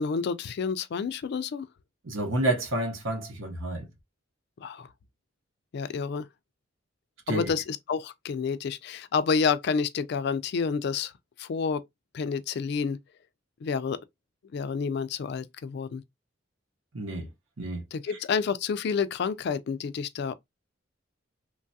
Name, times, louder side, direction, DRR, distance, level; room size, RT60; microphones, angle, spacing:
voice 1, 0.0-1.7 4.6-4.9 5.7-6.3 7.3-11.1 11.4-11.8 12.1-13.0 13.6-14.0 14.5-16.0 17.9-20.3, left 5 dB, 55° left, 0.3 m, -29 dB
voice 2, 2.0-3.9 7.3-7.5 16.9-17.3 17.6-17.8, right 1 dB, 85° right, 0.8 m, -29 dB
3.2 x 2.3 x 2.6 m
head